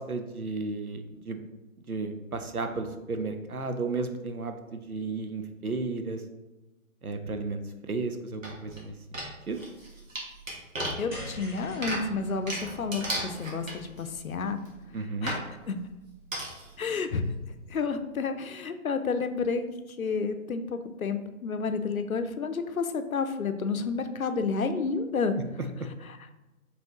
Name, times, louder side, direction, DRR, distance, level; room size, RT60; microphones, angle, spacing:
voice 1, 0.0-1.5 1.9-6.2 7.0-9.2 9.5-9.6 14.9-15.4, right 3 dB, 90° right, 6 dB, 0.7 m, -33 dB
sound 1, 8.4-8.8 9.1-14.2 14.7-14.8 15.3-15.4 16.3-16.7 17.1-17.2 17.4-17.5, right 1 dB, 65° right, 1.4 m, -35 dB
voice 2, 11.0-14.6 15.2-15.4 15.7-15.8 16.8-17.2 17.7-19.7 20.0-25.4, left 4 dB, 75° left, 8 dB, 0.6 m, -30 dB
sound 2, 11.1-15.5, right 1 dB, 5° right, 1.1 m, -46 dB
5.2 x 3.2 x 2.9 m, 1.1 s
figure-of-eight pair, 140°, 42 cm